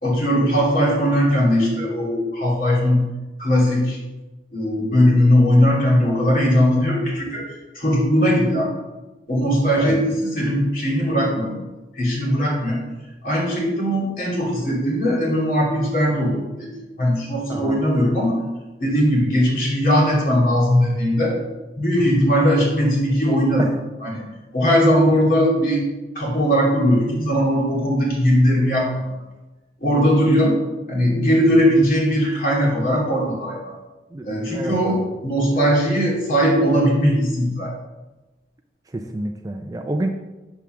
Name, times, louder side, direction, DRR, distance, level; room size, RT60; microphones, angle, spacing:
voice 1, 0.0-3.1 3.4-4.0 4.5-7.5 7.7-8.7 9.3-11.6 12.0-12.8 13.2-16.7 17.0-18.4 18.8-21.3 21.8-23.7 24.0-24.3 24.5-25.8 26.1-28.9 29.8-30.5 30.9-33.7 34.2-37.7, equal, 50° left, -4 dB, 2.3 m, -19 dB
voice 2, 34.1-35.1 38.9-40.1, right 1 dB, 20° right, 4 dB, 0.3 m, -28 dB
7.2 x 3.5 x 6.0 m, 1.1 s
head